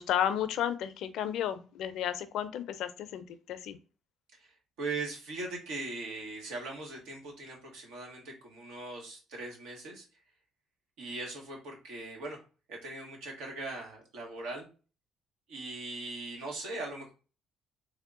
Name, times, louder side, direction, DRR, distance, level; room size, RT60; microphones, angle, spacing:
voice 1, 0.0-3.8, left 10 dB, 75° left, 11 dB, 0.4 m, -33 dB
voice 2, 4.4-10.0 11.0-12.4 12.7-14.7 15.5-17.1, right 3 dB, 85° right, 0 dB, 1.2 m, -40 dB
3.6 x 2.1 x 3.6 m, 0.35 s
cardioid pair, 90°, 0 cm